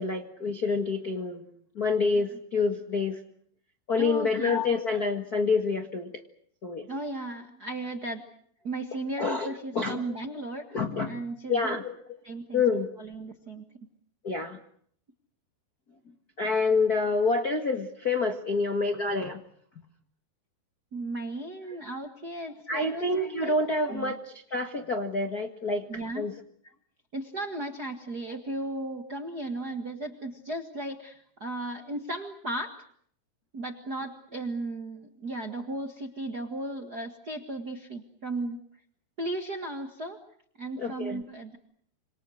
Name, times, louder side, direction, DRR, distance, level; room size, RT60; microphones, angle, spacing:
voice 1, 0.0-1.4 1.7-3.2 3.9-6.1 6.6-6.9 9.2-10.0 10.7-11.2 11.5-11.9 12.5-13.0 14.2-14.6 16.4-19.4 22.7-25.8 26.1-26.3 40.8-41.2, left 3 dB, 90° left, 6 dB, 0.8 m, -27 dB
voice 2, 4.0-4.6 6.9-8.2 8.6-10.7 11.0-11.7 12.2-12.6 13.0-13.6 20.9-23.0 23.4-23.5 23.9-24.1 25.9-26.3 27.1-32.7 33.5-38.6 39.2-40.2 40.6-41.6, right 2 dB, 55° right, 4 dB, 1.1 m, -35 dB
27.5 x 27.0 x 6.5 m, 0.64 s
omnidirectional pair, 4.9 m